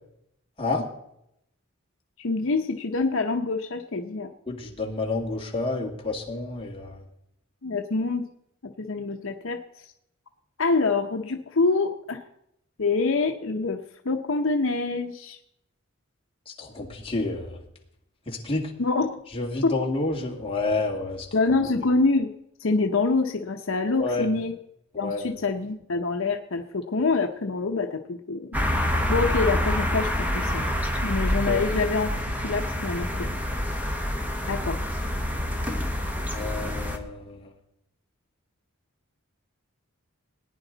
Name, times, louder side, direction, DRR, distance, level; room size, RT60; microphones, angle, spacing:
voice 1, 2.2-4.3 7.6-8.3 8.6-9.9 10.6-12.2 12.8-15.4 18.8-19.2 19.6-19.8 21.3-22.3 22.6-24.6 24.9-28.5 29.1-30.7 31.0-33.3 34.5-34.8, left 3 dB, 70° left, 4 dB, 0.8 m, -26 dB
voice 2, 4.5-7.0 16.5-17.6 18.3-18.7 19.3-21.3 24.0-24.3 24.9-25.3 31.5-31.6 36.3-37.5, left 3 dB, 25° left, -1 dB, 2.2 m, -29 dB
sound 1, 28.5-37.0, left 1 dB, 10° right, 1.3 m, -27 dB
19.0 x 10.0 x 4.0 m, 0.79 s
head